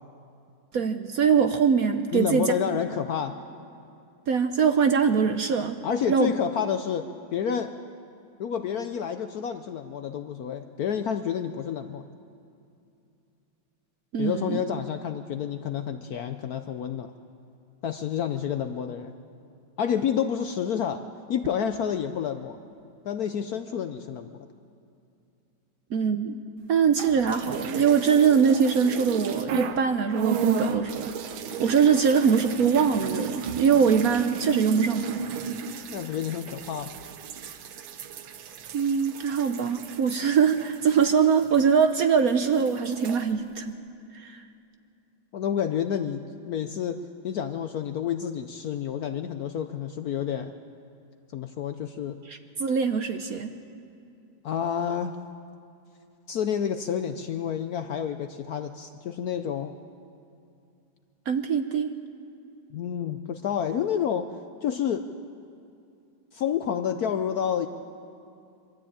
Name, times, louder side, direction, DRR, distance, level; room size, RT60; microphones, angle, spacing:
voice 1, 0.7-2.5 4.3-5.8 6.1-6.3 14.1-14.6 25.9-26.4 26.7-31.1 31.6-35.2 38.7-43.8 44.1-44.4 52.3-53.5 61.3-61.9, right 6 dB, 60° right, 8 dB, 1.0 m, -23 dB
voice 2, 2.1-3.3 5.8-7.7 8.4-12.0 14.2-17.1 17.8-19.1 19.8-21.0 21.3-22.6 23.0-24.3 35.9-36.9 45.3-47.0 47.2-50.5 51.3-52.2 54.4-55.2 56.3-59.7 62.7-64.3 64.6-65.1 66.3-67.7, left 8 dB, 65° left, 8 dB, 0.9 m, -29 dB
sound 1, 26.9-29.8 30.1-42.0 42.3-43.2, right 6 dB, 80° right, 1.7 m, -34 dB
23.5 x 13.5 x 8.7 m, 2.6 s
omnidirectional pair, 2.1 m